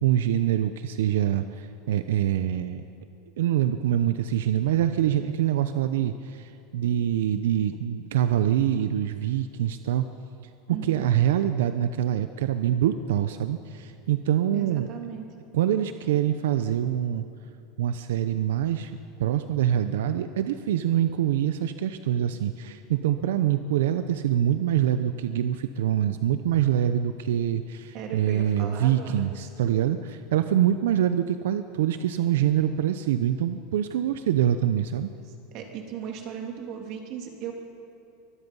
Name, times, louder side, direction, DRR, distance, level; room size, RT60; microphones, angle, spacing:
voice 1, 0.0-2.8 3.4-10.1 10.7-14.9 15.5-17.2 17.8-35.1, right 11 dB, 90° right, 10 dB, 0.7 m, -25 dB
voice 2, 10.7-11.1 14.5-15.2 27.9-29.4 35.5-37.5, right 7 dB, 45° right, 2 dB, 3.0 m, -37 dB
24.0 x 20.0 x 5.5 m, 2.7 s
supercardioid pair, 155°, 0 cm